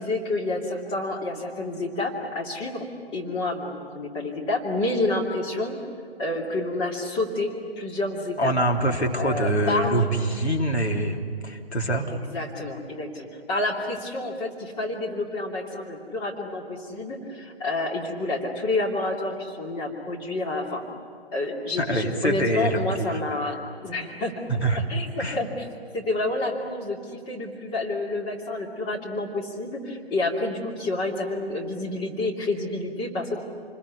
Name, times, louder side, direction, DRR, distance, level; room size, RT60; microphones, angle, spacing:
voice 1, 0.0-2.9 3.1-5.8 6.2-8.5 9.2-10.1 12.3-20.8 21.3-24.4 24.9-25.7 25.9-33.4, left 2 dB, 15° left, -1 dB, 2.8 m, -29 dB
voice 2, 8.4-11.2 11.4-12.1 21.8-23.2 24.6-24.8 25.2-25.4, right 1 dB, 90° left, 1 dB, 3.6 m, -24 dB
28.5 x 21.5 x 9.6 m, 2.2 s
figure-of-eight pair, 135°, 32 cm